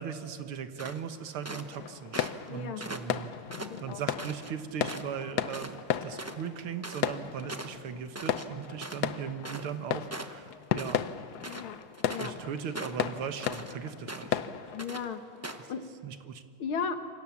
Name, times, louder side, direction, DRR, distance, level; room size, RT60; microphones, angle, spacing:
voice 1, 0.0-3.3 3.8-11.0 12.2-14.4 15.6-15.7 16.0-16.4, right 7 dB, 90° right, 9 dB, 2.1 m, -38 dB
sound 1, 0.8-1.8 2.1-2.5 2.8-4.5 4.9-5.2 5.5-5.7 6.0-9.8 10.1-11.0 11.3-12.4 12.7-13.7 14.1-14.5 14.8-15.0 15.4-15.7, right 1 dB, 20° right, 0.4 m, -41 dB
sound 2, 1.7-14.8, left 9 dB, 60° left, 1.2 m, -35 dB
voice 2, 2.5-2.8 3.6-4.0 11.4-11.8 12.1-12.3 14.7-15.2 15.7-15.8 16.6-17.0, left 6 dB, 75° left, 8 dB, 2.2 m, -35 dB
27.5 x 24.0 x 7.3 m, 2.2 s
omnidirectional pair, 2.3 m